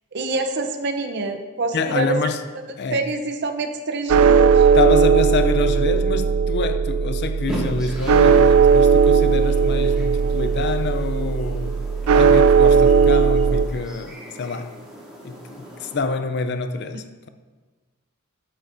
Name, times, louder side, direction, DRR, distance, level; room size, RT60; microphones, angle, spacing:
voice 1, 0.1-2.2 2.9-4.7, right 3 dB, 50° right, 0.7 m, -26 dB
voice 2, 1.7-2.4 2.8-3.0 4.8-11.8 12.1-14.7 15.2-17.3, left 4 dB, 50° left, 0.5 m, -26 dB
sound 1, 4.1-13.7, right 6 dB, 75° right, 0.4 m, -17 dB
sound 2, 7.5-16.0, right 1 dB, 5° right, 1.9 m, -38 dB
8.9 x 8.8 x 2.6 m
head